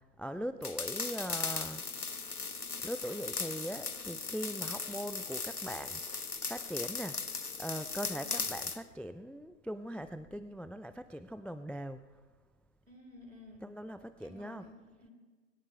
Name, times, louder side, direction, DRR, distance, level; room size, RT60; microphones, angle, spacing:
voice 1, 0.0-1.8 2.8-7.3 7.6-12.0 13.6-14.7, equal, 5° left, 12 dB, 0.4 m, -41 dB
sound 1, 0.6-8.8, left 4 dB, 60° left, 0.8 m, -38 dB
voice 2, 12.9-13.7 14.2-15.1, left 2 dB, 50° right, 2 dB, 4.2 m, -53 dB
22.0 x 18.0 x 3.2 m, 1.3 s
figure-of-eight pair, 175°, 50 cm